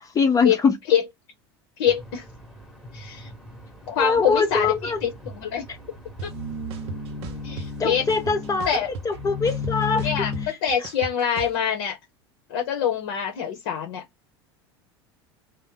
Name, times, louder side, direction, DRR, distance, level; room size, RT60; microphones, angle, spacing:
voice 1, 0.1-0.8 4.0-5.0 7.8-8.7 9.0-10.1, left 4 dB, 25° left, 0.7 m, -22 dB
voice 2, 1.8-2.2 2.9-3.3 3.9-5.7 6.2-6.3 7.4-8.0 8.7-8.9 10.0-12.0 12.5-14.0, left 8 dB, 65° left, 0.8 m, -25 dB
sound 1, 1.9-10.5, left 4 dB, ahead, 1.0 m, -35 dB
sound 2, 6.2-6.3 6.7-7.7 8.1-9.2 9.5-11.5, right 4 dB, 50° right, 0.7 m, -36 dB
2.6 x 2.0 x 3.7 m
hypercardioid pair, 80°, 13 cm